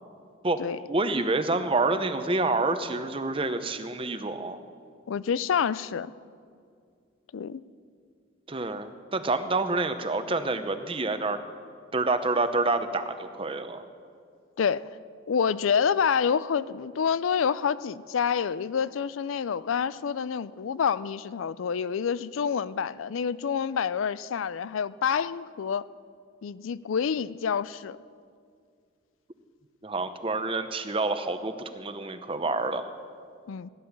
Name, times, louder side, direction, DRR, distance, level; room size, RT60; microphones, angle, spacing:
voice 1, 0.9-4.6 8.5-11.4 11.9-13.8 29.8-32.8, right 3 dB, 25° right, 9 dB, 0.8 m, -28 dB
voice 2, 5.1-6.1 7.3-7.6 14.6-14.9 15.3-25.8 26.4-28.0 33.5-33.7, left 7 dB, 90° left, 17 dB, 0.4 m, -27 dB
16.5 x 11.0 x 7.2 m, 2.2 s
head